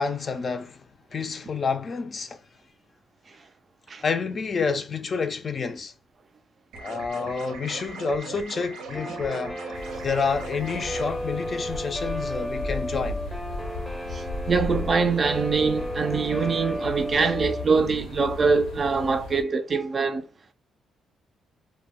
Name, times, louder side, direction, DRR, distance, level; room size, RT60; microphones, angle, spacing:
voice 1, 0.0-2.4 4.0-5.9 6.8-13.2, left 5 dB, 40° left, 0.4 m, -29 dB
sound 1, 6.7-11.1, right 4 dB, 85° right, 0.6 m, -39 dB
Guitar, 8.9-17.6, equal, ahead, 0.6 m, -34 dB
sound 2, 9.7-19.4, left 3 dB, 85° left, 0.6 m, -36 dB
voice 2, 14.1-20.2, right 5 dB, 40° right, 0.3 m, -24 dB
2.1 x 2.0 x 3.5 m
cardioid pair, 90°, 0 cm